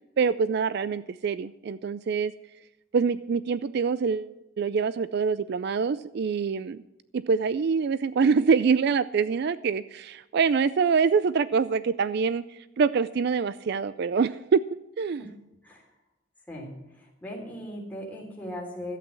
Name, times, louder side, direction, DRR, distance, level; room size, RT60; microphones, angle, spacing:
voice 1, 0.2-2.3 2.9-6.8 7.1-14.6 15.0-15.3, right 5 dB, 55° right, 15 dB, 0.3 m, -25 dB
voice 2, 16.5-19.0, equal, 10° left, -2 dB, 3.3 m, -38 dB
12.5 x 8.4 x 7.5 m, 0.92 s
head